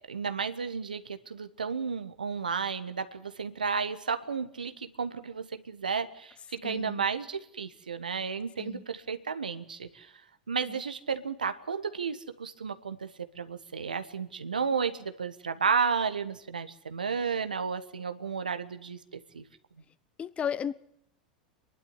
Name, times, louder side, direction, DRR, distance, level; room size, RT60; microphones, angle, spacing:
voice 1, 0.0-10.1 10.5-13.1 13.3-19.0 19.3-19.4, right 5 dB, 85° right, 1.4 m, -32 dB
voice 2, 6.6-7.0 8.6-8.8 20.2-20.7, left 8 dB, 25° left, 0.9 m, -34 dB
26.5 x 11.5 x 9.8 m
figure-of-eight pair, 85°, 4 cm